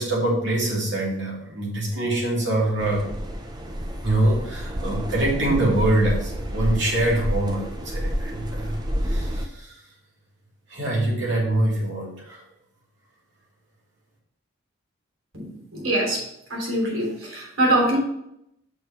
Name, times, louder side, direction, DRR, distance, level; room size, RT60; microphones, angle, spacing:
voice 1, 0.0-3.1 4.0-9.8 10.7-12.4, right 1 dB, 55° right, -4 dB, 2.9 m, -24 dB
sound 1, 2.8-9.5, equal, 20° right, 0.7 m, -29 dB
voice 2, 15.3-16.2 16.5-18.0, right 1 dB, 70° right, -2 dB, 3.3 m, -23 dB
6.6 x 5.9 x 4.4 m, 0.78 s
head